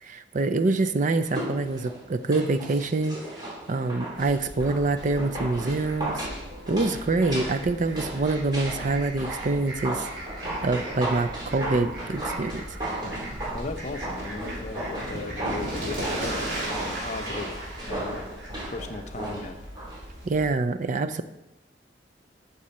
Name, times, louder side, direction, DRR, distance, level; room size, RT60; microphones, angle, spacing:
voice 1, 0.0-3.2 3.7-6.3 6.7-10.1 10.6-12.6 20.2-21.2, right 3 dB, 45° right, 10 dB, 0.5 m, -25 dB
sound 1, 1.2-20.0 20.3-20.4, right 1 dB, 25° right, 3.7 m, -35 dB
Fowl, 4.1-20.5, right 1 dB, 85° right, 3.7 m, -37 dB
voice 2, 13.5-16.2 16.8-18.3 18.7-19.7, left 3 dB, 40° left, 7 dB, 0.8 m, -37 dB
12.5 x 6.8 x 4.3 m, 0.93 s
head